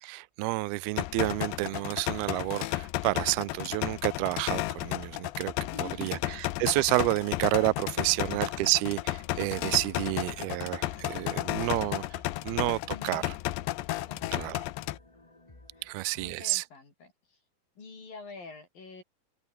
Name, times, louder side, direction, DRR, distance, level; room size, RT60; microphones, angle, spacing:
voice 1, 0.0-5.5 5.8-12.0 12.4-13.3 14.3-14.6 15.8-16.6, right 20 dB, 75° right, 2.5 m, -30 dB
sound 1, 1.0-15.0, left 17 dB, 85° left, 3.2 m, -33 dB
sound 2, 5.3-16.3, left 2 dB, 25° left, 0.7 m, -55 dB
voice 2, 5.7-6.2 8.1-8.2 12.9-13.3 14.1-14.6 15.7-17.4 17.8-19.0, left 4 dB, 55° left, 8.9 m, -47 dB
open air
omnidirectional pair, 5.0 m